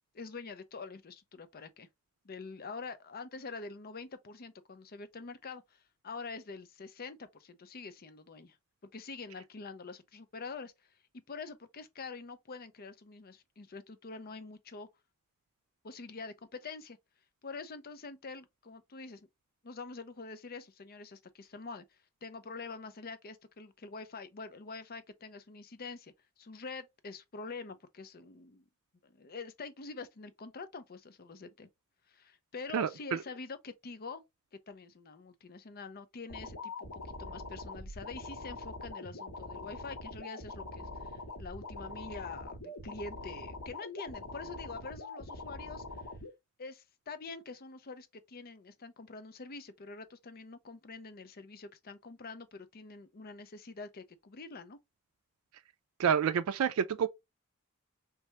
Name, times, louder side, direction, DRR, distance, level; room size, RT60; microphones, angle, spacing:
voice 1, 0.1-1.9 2.2-8.6 8.9-10.9 11.3-14.9 15.8-17.0 17.4-19.3 19.6-28.7 29.0-31.7 32.1-34.2 34.7-45.8 46.6-54.8, left 4 dB, 45° left, 0.6 m, -46 dB
voice 2, 32.7-33.2 56.0-57.1, right 7 dB, 90° right, 0.4 m, -28 dB
sound 1, 36.3-46.3, left 2 dB, 80° left, 2.0 m, -43 dB
3.3 x 3.3 x 2.8 m
head